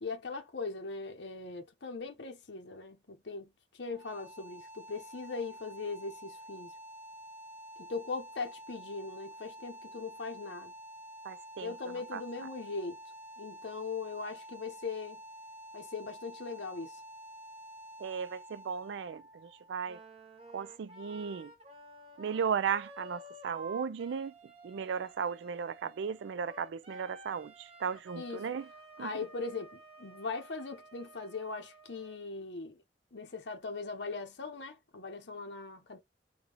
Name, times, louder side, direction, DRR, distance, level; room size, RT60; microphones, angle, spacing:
voice 1, 0.0-6.7 7.8-10.7 11.6-13.0 13.4-15.2 15.7-17.0 28.2-28.4 29.0-32.8 33.1-36.0, left 4 dB, 70° left, 0.8 m, -40 dB
sound 1, 3.8-20.8, right 1 dB, 10° right, 0.5 m, -50 dB
voice 2, 11.2-12.5 18.0-20.0 20.5-21.5 22.2-24.3 24.6-28.7 29.0-29.1, right 6 dB, 75° right, 0.3 m, -36 dB
Wind instrument woodwind instrument, 19.8-32.3, right 2 dB, 30° right, 0.9 m, -52 dB
3.6 x 2.2 x 3.3 m
head